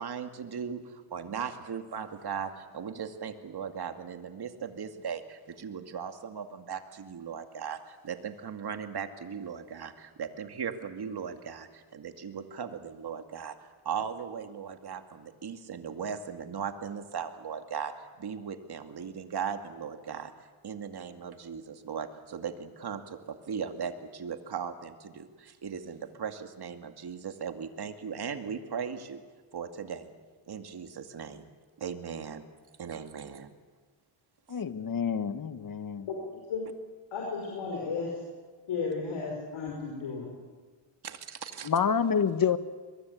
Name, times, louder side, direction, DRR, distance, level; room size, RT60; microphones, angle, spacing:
voice 1, 0.0-20.3 20.6-29.2 29.5-30.1 30.5-31.5 31.8-32.4 32.8-33.5 41.0-41.7, right 7 dB, 50° right, 7 dB, 2.3 m, -38 dB
voice 2, 34.5-36.1 41.6-42.6, left 7 dB, 45° left, 12 dB, 1.5 m, -27 dB
voice 3, 37.1-38.1 38.7-40.3, left 4 dB, 75° left, -1 dB, 5.6 m, -34 dB
23.0 x 22.0 x 8.4 m, 1.4 s
cardioid pair, 95°, 48 cm